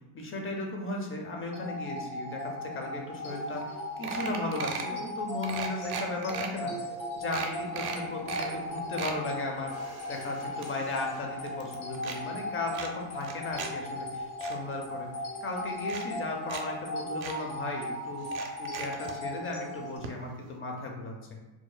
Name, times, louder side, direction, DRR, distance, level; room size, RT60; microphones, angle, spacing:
voice 1, 0.1-6.7 7.2-15.1 15.4-18.3 18.6-21.1, left 2 dB, 25° left, 1 dB, 0.6 m, -36 dB
sound 1, 1.5-20.0, left 1 dB, 60° left, 1.3 m, -37 dB
sound 2, 3.3-3.4 3.6-3.8 4.0-4.9 5.4-6.5 6.9-7.0 7.3-8.5 8.8-9.2 9.7-11.2 11.5-12.2 12.7-13.7 14.1-14.5 15.3-15.4 15.8-16.6 16.9-17.0 17.2-17.4 18.2-19.2 20.0-20.1 20.4-20.5, right 6 dB, 50° right, 0.6 m, -38 dB
sound 3, 7.0-14.3 14.7-14.9 15.5-16.2 16.5-16.6, left 2 dB, 80° left, 1.4 m, -53 dB
4.5 x 2.4 x 2.2 m, 1.1 s
cardioid pair, 110°, 47 cm